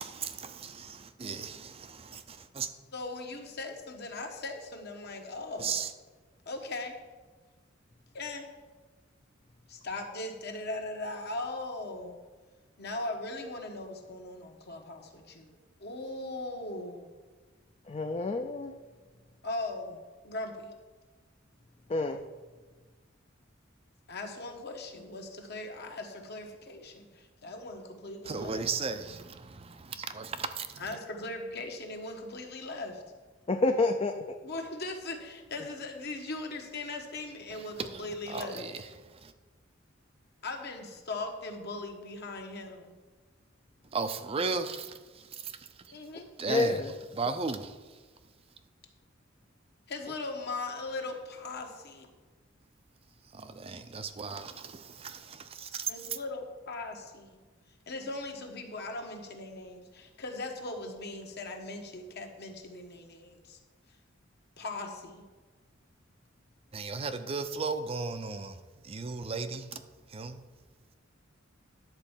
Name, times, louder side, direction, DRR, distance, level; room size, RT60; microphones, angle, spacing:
voice 1, 0.0-2.7 5.6-5.9 28.2-31.0 37.5-39.3 43.9-46.0 46.4-46.9 47.1-48.0 53.3-56.2 66.7-69.8 70.1-70.4, right 4 dB, 30° right, 0.5 m, -36 dB
voice 2, 2.9-5.7 6.4-6.9 8.1-8.5 9.7-12.2 12.8-17.1 19.4-20.7 24.1-28.7 30.8-33.0 34.4-38.6 40.4-42.9 45.9-46.2 49.9-52.1 55.9-57.4 57.9-63.6 64.6-65.2, left 2 dB, 55° left, 1.3 m, -39 dB
voice 3, 17.9-18.7 21.9-22.2 33.5-34.4 46.5-46.9, left 2 dB, 30° left, 0.5 m, -28 dB
10.5 x 4.4 x 7.3 m
head